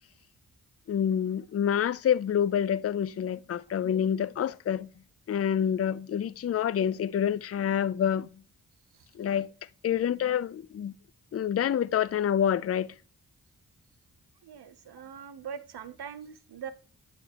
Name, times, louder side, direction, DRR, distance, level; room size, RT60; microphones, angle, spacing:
voice 1, 0.9-4.9 5.3-8.3 9.1-9.5 9.8-10.9 11.3-12.9, left 9 dB, 40° left, 0.4 m, -27 dB
voice 2, 14.4-16.7, right 7 dB, 75° right, 0.8 m, -42 dB
8.2 x 6.9 x 2.9 m
cardioid pair, 40°, 39 cm